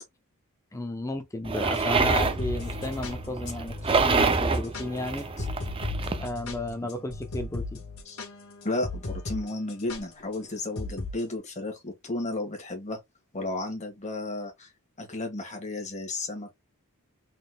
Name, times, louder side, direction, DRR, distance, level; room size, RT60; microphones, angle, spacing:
voice 1, 0.7-5.3 6.2-7.8, left 1 dB, 15° left, 0.7 m, -33 dB
sound 1, 1.4-6.3, right 4 dB, 25° right, 0.4 m, -27 dB
sound 2, 1.7-9.4 9.7-10.0 10.8-11.1, left 3 dB, 70° left, 1.4 m, -36 dB
voice 2, 8.6-13.0 13.3-14.7 15.0-16.5, left 2 dB, 30° left, 1.6 m, -33 dB
4.1 x 3.7 x 2.3 m
head